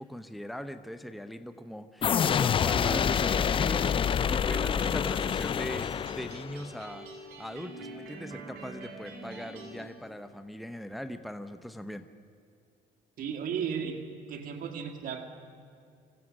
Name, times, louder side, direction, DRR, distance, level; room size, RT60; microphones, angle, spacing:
voice 1, 0.0-7.1 7.4-12.1, equal, ahead, 9 dB, 0.8 m, -40 dB
sound 1, 2.0-6.7, left 8 dB, 30° left, 0.4 m, -27 dB
sound 2, 2.8-9.8, right 2 dB, 80° right, 5.2 m, -45 dB
voice 2, 13.2-15.2, right 7 dB, 55° right, 4 dB, 2.1 m, -35 dB
26.0 x 16.0 x 6.5 m, 2.4 s
cardioid pair, 110°, 17 cm